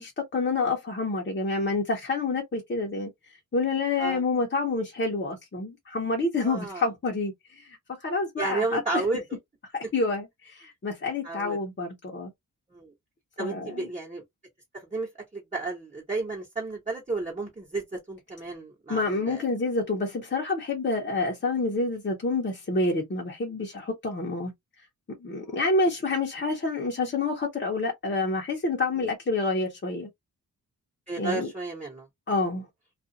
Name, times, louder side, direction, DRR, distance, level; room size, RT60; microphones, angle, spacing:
voice 1, 0.0-3.1 3.5-8.8 9.7-12.3 13.4-13.9 18.9-24.5 25.2-30.1 31.2-31.5 32.3-32.7, left 3 dB, 30° left, 0.9 m, -28 dB
voice 2, 6.4-6.9 8.4-9.2 11.2-11.6 12.7-12.9 13.4-14.2 14.7-19.4 31.1-32.1, right 3 dB, 20° right, 1.1 m, -32 dB
2.5 x 2.4 x 2.6 m
wide cardioid pair, 115°, 36 cm